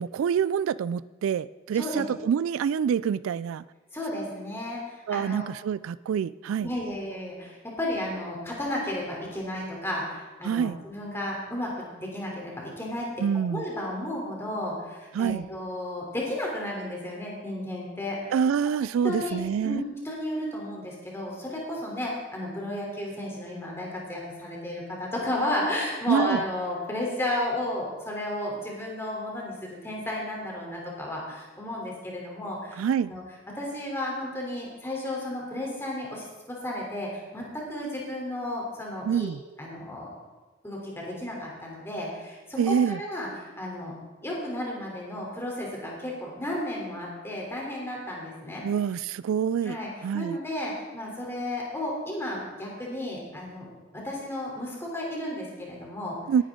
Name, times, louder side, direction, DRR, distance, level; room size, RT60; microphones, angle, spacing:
voice 1, 0.0-3.6 5.1-6.7 10.4-10.8 13.2-13.6 15.1-15.5 18.3-19.8 26.1-26.4 32.8-33.1 39.0-39.4 42.6-43.0 48.6-49.8 50.0-50.4 56.3-56.4, right 7 dB, 75° right, 19 dB, 0.3 m, -26 dB
voice 2, 3.9-5.4 6.6-13.1 13.5-18.4 19.0-19.4 19.6-33.2 33.5-39.3 39.6-40.1 40.6-43.9 44.2-48.6 49.6-56.2, left 1 dB, 10° left, -3 dB, 3.3 m, -33 dB
18.5 x 10.0 x 3.7 m, 1.2 s
head